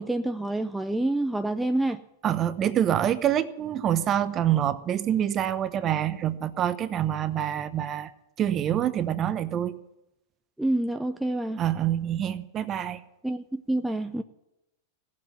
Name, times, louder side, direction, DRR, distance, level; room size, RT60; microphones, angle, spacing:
voice 1, 0.0-2.0 10.6-11.6 13.2-14.2, right 1 dB, 5° right, 0.6 m, -27 dB
voice 2, 2.2-8.1 8.4-9.8 11.6-13.0, right 10 dB, 35° right, 0.9 m, -26 dB
16.5 x 7.5 x 9.2 m
hypercardioid pair, 110°, 0 cm